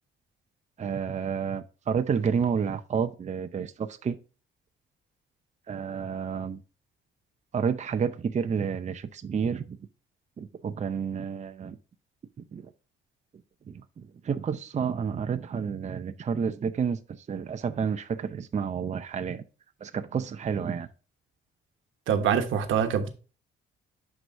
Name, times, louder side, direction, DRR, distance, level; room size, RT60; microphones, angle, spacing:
voice 1, 0.8-4.2 5.7-6.6 7.5-9.8 10.4-11.8 12.5-12.7 13.7-19.4 19.8-20.9, right 6 dB, 35° right, 0.6 m, -30 dB
voice 2, 22.1-23.1, right 8 dB, 80° right, 1.2 m, -24 dB
10.5 x 4.8 x 2.6 m
cardioid pair, 90°, 20 cm